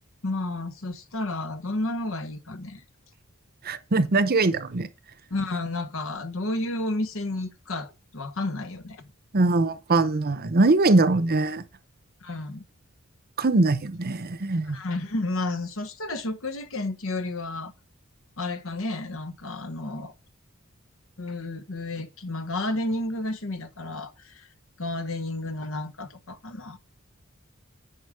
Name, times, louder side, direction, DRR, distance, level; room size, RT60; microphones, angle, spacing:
voice 1, 0.2-2.8 5.3-9.0 12.2-12.6 14.6-17.7 18.4-20.1 21.2-24.5 24.8-26.8, left 2 dB, 65° left, 1.2 m, -31 dB
voice 2, 3.6-4.9 9.3-11.6 13.4-14.8, right 3 dB, 45° right, 0.8 m, -22 dB
9.5 x 5.3 x 5.0 m
head